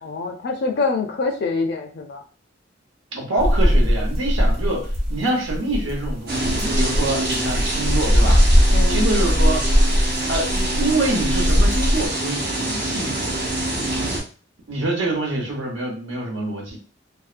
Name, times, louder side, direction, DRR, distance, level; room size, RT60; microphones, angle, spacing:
voice 1, 0.0-2.2 8.7-9.0, left 4 dB, 55° left, 4 dB, 0.4 m, -25 dB
voice 2, 3.1-8.4 8.9-9.7 10.3-13.3 14.7-16.8, right 2 dB, 80° right, -1 dB, 0.9 m, -26 dB
sound 1, 3.4-12.1, equal, 30° right, 1.0 m, -19 dB
sound 2, 6.3-14.2, right 1 dB, 55° right, 0.9 m, -25 dB
2.7 x 2.2 x 2.5 m, 0.38 s
head